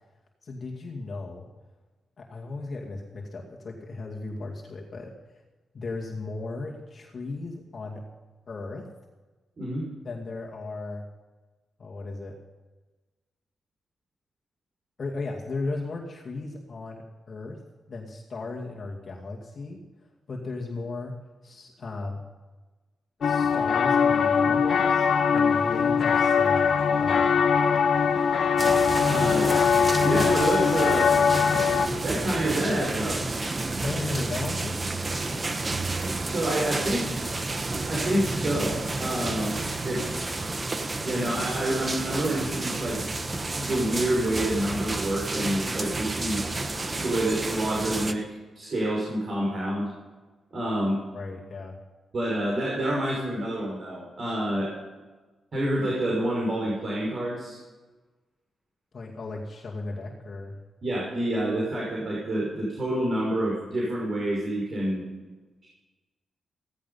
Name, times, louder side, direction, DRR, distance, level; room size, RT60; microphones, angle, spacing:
voice 1, 0.4-1.5 2.2-5.4 5.7-8.0 8.5-8.9 10.0-11.0 11.8-12.4 15.0-17.6 17.9-19.8 20.3-22.2 23.2-27.5 33.8-34.8 36.2-36.3 51.1-51.8 58.9-60.6, left 3 dB, 40° left, -1 dB, 2.4 m, -36 dB
sound 1, 23.2-31.9, left 6 dB, 60° left, 1.1 m, -22 dB
sound 2, 28.6-48.1, right 2 dB, 25° right, 1.2 m, -31 dB
voice 2, 29.0-29.5 30.0-31.1 32.0-33.2 36.2-37.1 37.9-39.6 39.8-40.2 41.0-43.0 43.6-46.4 47.0-48.2 48.6-49.9 50.5-51.0 52.1-54.7 55.5-57.6 60.8-65.0, right 1 dB, 40° right, -3 dB, 5.5 m, -28 dB
17.0 x 15.0 x 5.6 m, 1.2 s
wide cardioid pair, 135°, 0 cm